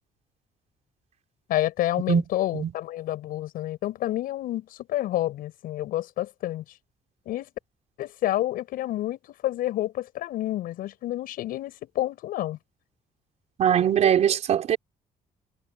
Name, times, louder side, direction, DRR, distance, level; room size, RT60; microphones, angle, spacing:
voice 1, 1.5-6.6 7.2-7.5 8.0-12.6, left 14 dB, 80° left, 6.8 m, -29 dB
voice 2, 13.6-14.8, right 9 dB, 50° right, 4.5 m, -21 dB
cardioid pair, 155°, 15 cm